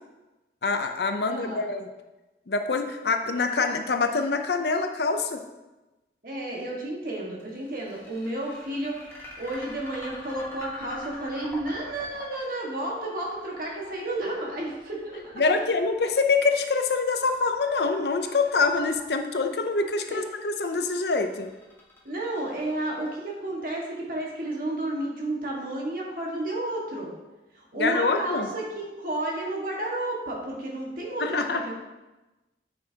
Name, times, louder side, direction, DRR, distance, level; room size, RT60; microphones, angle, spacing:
voice 1, 0.6-1.9 2.5-5.4 15.4-21.5 27.8-28.5 31.2-31.6, left 4 dB, 65° left, 6 dB, 0.6 m, -25 dB
voice 2, 1.3-1.6 6.2-9.0 9.4-15.4 20.1-20.2 22.0-27.1 27.5-31.7, right 1 dB, 50° right, -2 dB, 1.7 m, -32 dB
sound 1, 7.4-23.5, left 1 dB, 15° left, 1.5 m, -45 dB
8.7 x 6.4 x 2.9 m, 1.1 s
head